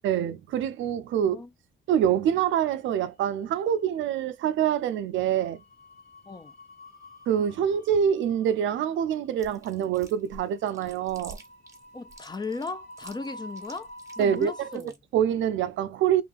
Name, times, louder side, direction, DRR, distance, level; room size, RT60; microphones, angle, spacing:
voice 1, 0.0-1.4 1.9-5.6 7.3-11.4 14.2-14.8 15.1-16.2, right 9 dB, 75° right, 0.4 m, -25 dB
voice 2, 1.2-1.5 6.3-6.5 11.9-14.9, left 3 dB, 20° left, 0.5 m, -37 dB
sound 1, 2.7-3.5 3.7-4.0 5.2-14.7, equal, 50° left, 1.5 m, -48 dB
Chewing mastication, 9.4-15.0, right 2 dB, 15° right, 1.1 m, -49 dB
3.1 x 2.3 x 2.4 m
cardioid pair, 90°, 20 cm